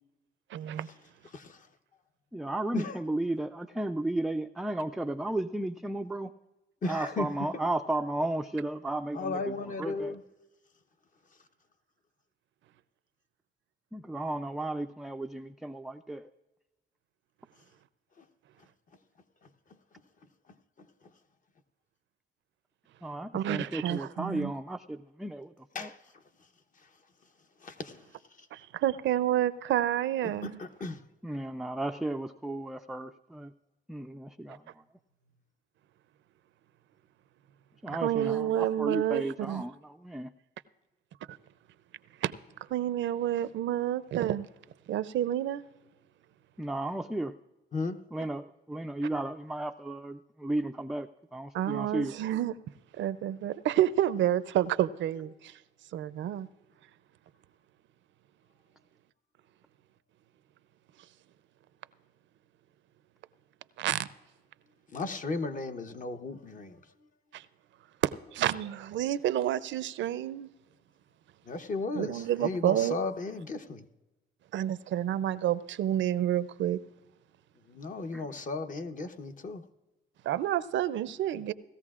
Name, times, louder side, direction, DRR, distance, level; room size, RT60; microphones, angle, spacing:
voice 1, 0.5-0.9 23.3-24.5 28.5-30.6 34.5-34.6 37.9-39.6 41.3-41.4 42.2-42.3 42.7-44.5 44.9-45.6 51.5-52.5 52.9-55.6 55.9-56.5 63.8-64.1 67.3-67.4 68.0-70.5 71.9-73.0 74.5-76.8 80.2-81.5, right 12 dB, 70° right, 0.5 m, -29 dB
voice 2, 2.3-6.3 6.8-10.2 13.9-16.3 23.0-25.9 31.2-33.5 33.9-34.6 37.8-40.3 46.6-47.3 48.1-52.1 78.1-78.3, right 1 dB, ahead, 0.3 m, -34 dB
voice 3, 6.8-7.3 9.1-10.2 25.7-25.9 27.6-28.0 30.4-31.0 47.7-48.0 64.9-66.8 71.5-73.8 77.7-79.6, left 3 dB, 40° left, 0.9 m, -35 dB
18.0 x 14.0 x 2.4 m
cardioid pair, 90°, 20 cm